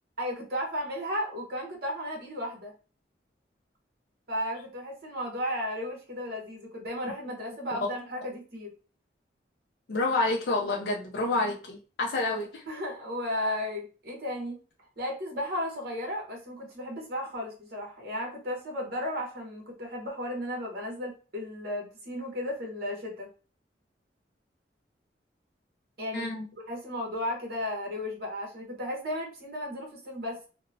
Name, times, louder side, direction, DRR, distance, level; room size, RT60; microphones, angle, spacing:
voice 1, 0.2-2.7 4.3-8.7 12.7-14.6 15.0-23.3 26.0-26.4 26.7-30.5, left 1 dB, 55° right, -1 dB, 1.0 m, -34 dB
voice 2, 9.9-12.6 26.1-26.5, left 2 dB, 65° left, -2 dB, 0.5 m, -28 dB
2.9 x 2.0 x 2.6 m, 0.35 s
head